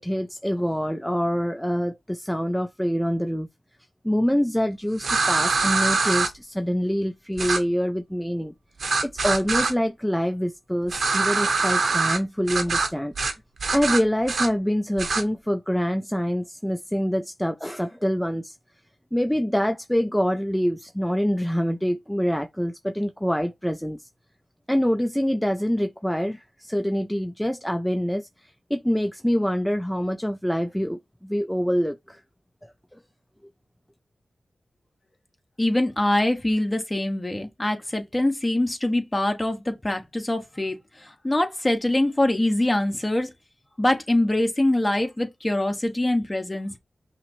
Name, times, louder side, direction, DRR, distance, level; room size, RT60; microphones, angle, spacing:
voice 1, 0.0-3.5 4.0-8.5 9.0-13.1 13.7-18.6 19.1-24.1 24.7-32.2 32.6-32.7, equal, 5° left, 0.4 m, -25 dB
sound 1, 5.0-6.3 7.4-7.6 8.8-9.7 10.9-12.2 12.5-12.9 13.2-13.3 13.6-14.5 15.0-15.2, right 4 dB, 75° right, 0.8 m, -23 dB
voice 2, 35.6-43.3 43.8-46.7, left 1 dB, 25° left, 1.1 m, -24 dB
5.6 x 2.1 x 3.0 m
cardioid pair, 50°, 0 cm